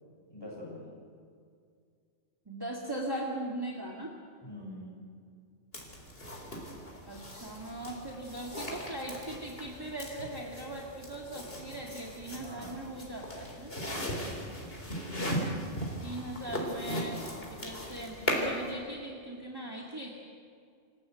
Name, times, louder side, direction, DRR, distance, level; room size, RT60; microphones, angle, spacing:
voice 1, 0.3-0.8 4.4-4.9 12.4-12.8 13.8-14.6, left 1 dB, 20° left, -2 dB, 6.8 m, -45 dB
voice 2, 2.5-4.1 7.1-13.7 16.0-17.2 17.5-20.1, right 1 dB, 20° right, -1 dB, 2.0 m, -39 dB
sound 1, 5.7-18.7, equal, 50° left, 4.0 m, -38 dB
27.0 x 15.5 x 8.0 m, 2.2 s
omnidirectional pair, 1.3 m